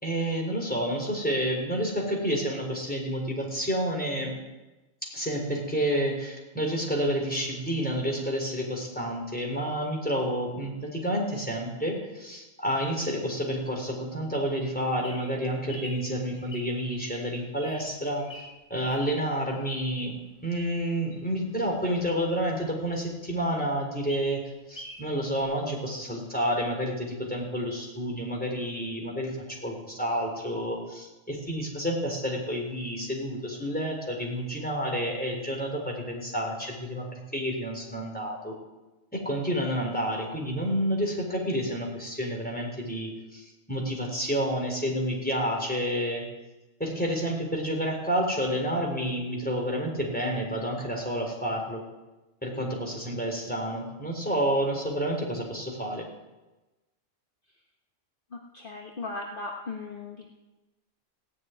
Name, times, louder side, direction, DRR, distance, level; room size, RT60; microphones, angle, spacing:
voice 1, 0.0-4.4 5.0-18.3 18.7-38.6 39.1-46.3 46.8-51.8 52.4-56.0, equal, 5° left, 0 dB, 3.8 m, -29 dB
Bird vocalization bird call bird song, 14.6-20.1 20.5-22.7 23.1-23.2 23.4-23.5 23.8-25.1 25.3-25.4, equal, 25° left, 5.7 m, -46 dB
voice 2, 58.3-60.3, left 3 dB, 45° left, 0 dB, 1.5 m, -37 dB
17.0 x 7.2 x 9.5 m, 1.1 s
omnidirectional pair, 1.3 m